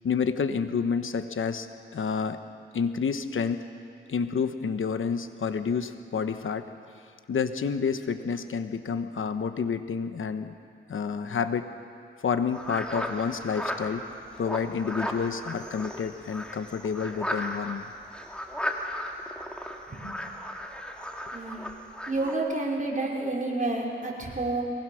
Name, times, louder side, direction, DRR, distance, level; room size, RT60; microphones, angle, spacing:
voice 1, 0.0-1.7 1.9-2.4 2.7-3.7 4.1-6.7 7.3-10.5 10.9-11.7 12.2-14.1 14.3-17.9, left 6 dB, 75° left, 9 dB, 1.1 m, -29 dB
sound 1, 12.5-22.3, equal, 5° left, 2.4 m, -35 dB
voice 2, 21.3-21.6 22.1-24.6, right 2 dB, 40° right, -3 dB, 5.0 m, -29 dB
22.5 x 20.5 x 6.4 m, 2.4 s
cardioid pair, 65°, 21 cm